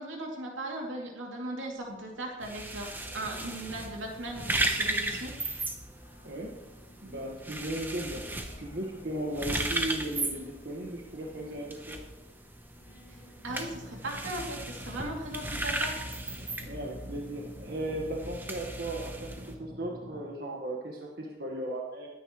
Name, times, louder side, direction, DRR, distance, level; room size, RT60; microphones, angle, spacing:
voice 1, 0.0-5.6 13.1-13.2 13.4-16.0, right 1 dB, 85° right, 0 dB, 2.9 m, -38 dB
Singing, 1.7-17.7, left 1 dB, 80° left, 3.7 m, -58 dB
sound 1, 2.4-19.5, right 1 dB, 10° right, 0.9 m, -36 dB
voice 2, 7.0-12.0 16.6-22.1, right 1 dB, 55° right, -2 dB, 1.6 m, -36 dB
sound 2, 13.5-20.2, equal, 35° right, 1.7 m, -47 dB
21.5 x 9.7 x 3.2 m, 0.97 s
head